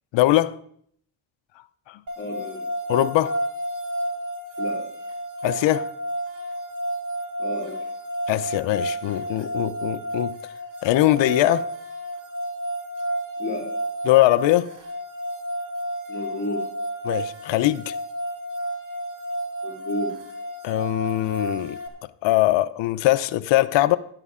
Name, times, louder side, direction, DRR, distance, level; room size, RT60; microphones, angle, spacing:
voice 1, 0.1-0.6 1.9-2.0 2.9-3.4 5.4-5.9 8.3-10.4 10.8-11.7 14.0-14.7 17.0-18.0 20.6-21.8 22.2-24.0, left 15 dB, 70° left, 0.7 m, -21 dB
sound 1, 2.1-21.9, right 1 dB, 45° right, 1.9 m, -31 dB
voice 2, 2.2-2.6 4.6-4.9 7.4-7.8 13.4-13.7 16.1-16.7 19.6-20.2, left 1 dB, 25° left, 2.7 m, -31 dB
12.5 x 11.0 x 3.7 m
cardioid pair, 115°, 45 cm